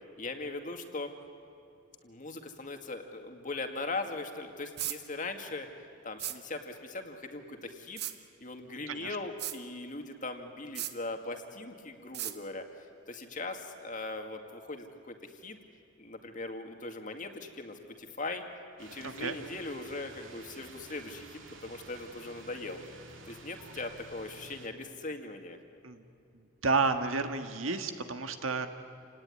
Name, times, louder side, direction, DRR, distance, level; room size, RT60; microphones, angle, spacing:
voice 1, 0.2-1.1 2.0-5.7 6.0-8.0 8.4-12.7 13.1-15.2 15.4-15.6 16.0-18.4 18.8-22.8 23.3-25.6, left 2 dB, 40° left, 5 dB, 2.0 m, -40 dB
sound 1, 4.8-5.0 6.2-6.4 8.0-8.2 9.4-9.6 10.8-10.9 12.1-12.4, right 12 dB, 55° right, 1.1 m, -35 dB
sound 2, 18.8-24.7, right 3 dB, 70° right, 2.7 m, -51 dB
voice 2, 19.0-19.3 25.8-26.0 26.6-28.7, right 4 dB, 85° right, 7 dB, 1.7 m, -31 dB
28.5 x 18.5 x 9.8 m, 2.6 s
head